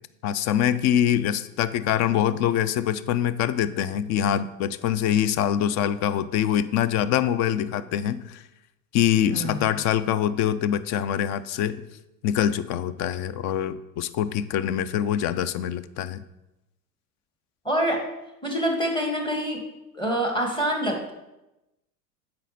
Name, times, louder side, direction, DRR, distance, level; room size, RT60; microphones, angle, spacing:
voice 1, 0.2-8.4 8.9-11.8 12.2-16.2, left 10 dB, 35° left, 16 dB, 0.4 m, -24 dB
voice 2, 9.3-9.7 17.7-18.0 18.4-19.6 19.9-21.1, equal, 10° left, 1 dB, 2.0 m, -26 dB
7.9 x 5.3 x 4.2 m, 0.95 s
hypercardioid pair, 90°, 48 cm